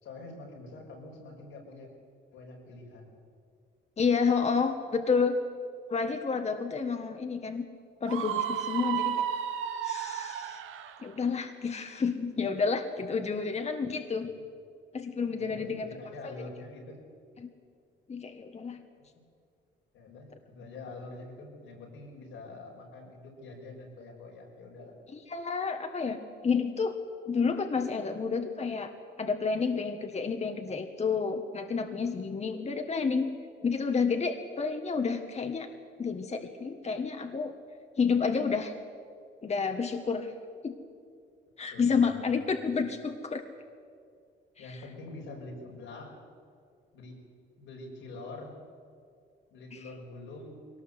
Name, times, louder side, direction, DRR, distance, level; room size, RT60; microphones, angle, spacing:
voice 1, 0.0-1.9 2.3-3.2 14.0-14.4 15.3-17.0 19.0-19.1 19.9-24.9 41.7-42.9 44.6-46.2 46.9-47.2 47.6-48.6 49.5-50.7, left 2 dB, 90° left, -1 dB, 5.8 m, -45 dB
voice 2, 4.0-5.4 5.9-7.6 8.0-9.2 9.8-10.6 11.0-14.3 14.9-15.9 16.2-16.3 17.4-17.5 18.1-18.8 25.1-26.2 26.4-27.0 27.3-28.9 29.2-33.3 33.6-35.7 36.0-37.5 38.0-38.7 39.4-40.3 40.6-40.7 41.6-43.4 44.6-44.8, left 5 dB, 35° left, 6 dB, 1.5 m, -30 dB
Screaming, 8.1-11.0, right 10 dB, 85° right, 1.4 m, -32 dB
22.0 x 18.5 x 8.2 m, 2.3 s
cardioid pair, 90°, 20 cm